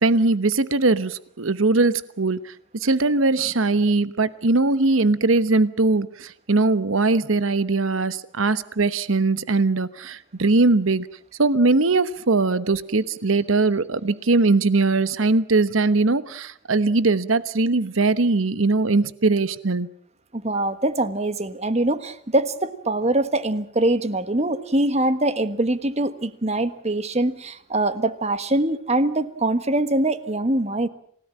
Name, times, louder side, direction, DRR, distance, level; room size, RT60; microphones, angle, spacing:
voice 1, 0.0-2.5 2.8-11.1 11.4-19.9, right 3 dB, 80° right, 1.0 m, -20 dB
voice 2, 20.3-30.9, right 1 dB, 35° right, 1.4 m, -23 dB
28.0 x 17.5 x 7.6 m
head